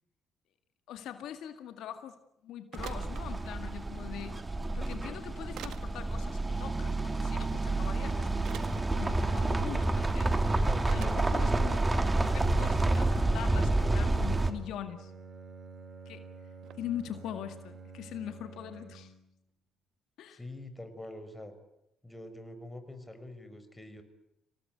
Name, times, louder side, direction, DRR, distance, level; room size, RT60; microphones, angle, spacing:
voice 1, 0.9-2.2 2.4-4.4 4.7-8.6 8.9-10.3 10.9-11.9 12.2-15.1 16.1-16.3 16.8-19.1 20.2-20.4, left 10 dB, 75° left, 8 dB, 1.9 m, -42 dB
sound 1, 2.7-3.3 4.6-4.7 5.6-5.9 7.6-7.7 8.4-8.8 9.7-9.8 10.1-10.2 10.9-11.2 11.9-12.0 12.4-13.0 13.6-13.7 14.3-14.6 16.6-16.8, right 10 dB, 70° right, 1.8 m, -45 dB
sound 2, 2.8-14.5, right 2 dB, 20° right, 2.9 m, -29 dB
voice 2, 10.6-11.2 20.3-21.5 22.0-24.0, left 1 dB, 15° left, 9 dB, 5.9 m, -45 dB
Bowed string instrument, 14.2-19.3, right 4 dB, 40° right, 3.4 m, -49 dB
26.5 x 18.0 x 9.4 m, 0.82 s
supercardioid pair, 60°, 0 cm